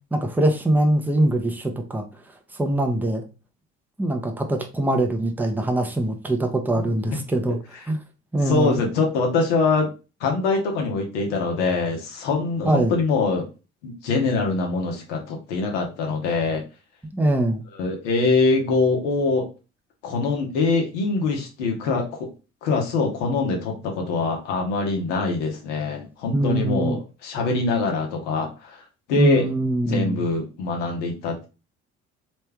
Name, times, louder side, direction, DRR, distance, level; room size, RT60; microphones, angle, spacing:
voice 1, 0.1-2.0 2.6-3.2 4.0-7.6 7.9-8.0 8.3-8.8 12.6-12.9 17.1-17.6 26.3-27.0 29.2-30.2, right 1 dB, 5° right, 4 dB, 0.8 m, -22 dB
voice 2, 8.4-9.9 10.2-13.5 13.8-16.6 17.8-19.5 20.0-22.3 22.6-29.5 29.9-31.5, left 3 dB, 75° left, 1 dB, 1.1 m, -23 dB
3.3 x 3.1 x 3.4 m, 0.31 s
hypercardioid pair, 55°, 35 cm